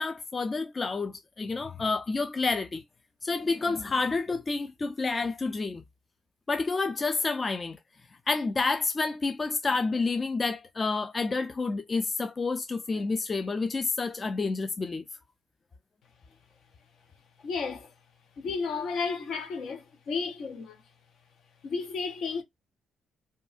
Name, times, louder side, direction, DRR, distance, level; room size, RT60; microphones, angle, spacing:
voice 1, 0.0-2.8 3.2-5.8 6.5-7.8 8.3-15.0, left 3 dB, 30° left, 0.3 m, -29 dB
voice 2, 17.4-17.9 18.4-20.8 21.6-22.4, left 4 dB, 70° left, 0.9 m, -33 dB
2.5 x 2.3 x 2.4 m
cardioid pair, 90°, 0 cm